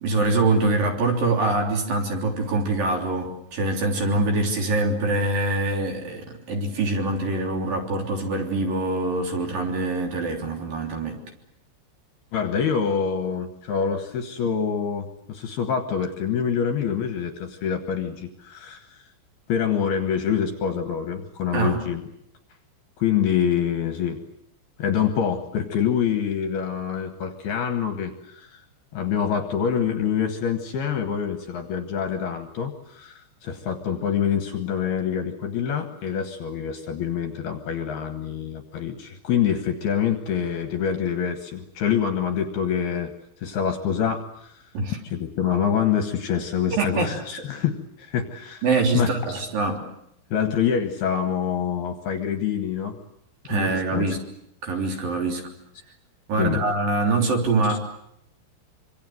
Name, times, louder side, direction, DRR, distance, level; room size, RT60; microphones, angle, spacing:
voice 1, 0.0-11.2 21.5-21.8 44.7-45.0 46.7-47.1 48.6-49.8 53.4-54.2 54.6-55.4 56.3-57.8, right 2 dB, 45° right, 3 dB, 4.6 m, -24 dB
voice 2, 12.3-19.0 19.5-22.0 23.0-24.2 24.8-28.6 28.9-43.1 43.4-44.6 45.0-48.6 48.9-49.1 50.3-53.0 53.5-54.2 56.4-56.7 57.7-57.8, left 8 dB, 65° left, 7 dB, 2.8 m, -26 dB
26.0 x 25.0 x 7.9 m, 0.75 s
omnidirectional pair, 5.8 m